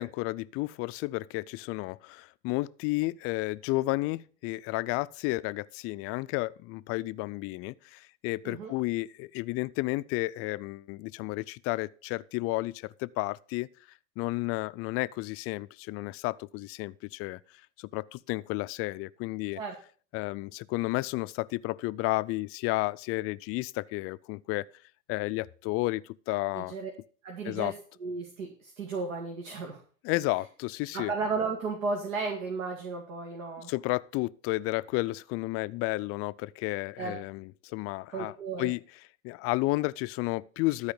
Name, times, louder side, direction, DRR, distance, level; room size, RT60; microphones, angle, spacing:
voice 1, 0.0-13.7 14.2-17.4 17.8-19.6 20.1-24.7 25.1-26.8 27.4-27.7 30.0-31.1 33.7-38.3 38.6-38.8 39.2-40.9, left 21 dB, 35° left, 0.4 m, -32 dB
voice 2, 26.5-26.9 27.2-27.7 28.0-29.8 30.9-33.7 37.0-37.2 38.1-38.7, right 4 dB, 75° right, 2.4 m, -34 dB
13.0 x 4.8 x 6.8 m
hypercardioid pair, 110°, 40 cm